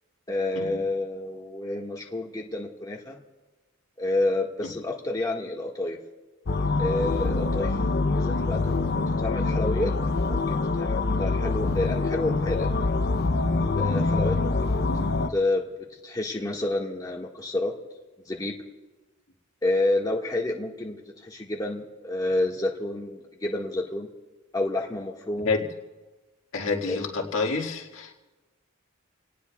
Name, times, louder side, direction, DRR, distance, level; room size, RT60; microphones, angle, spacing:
voice 1, 0.3-3.2 4.0-6.0 6.8-7.8 8.1-12.7 13.8-14.8 15.3-17.7 18.2-18.6 19.6-24.1 24.5-25.5 26.9-27.0, left 2 dB, 20° left, -2 dB, 1.6 m, -29 dB
sound 1, 6.5-15.3, left 3 dB, 50° left, 0.6 m, -25 dB
voice 2, 26.5-28.1, left 4 dB, 70° left, 0 dB, 2.0 m, -28 dB
29.0 x 18.5 x 2.3 m, 1.2 s
head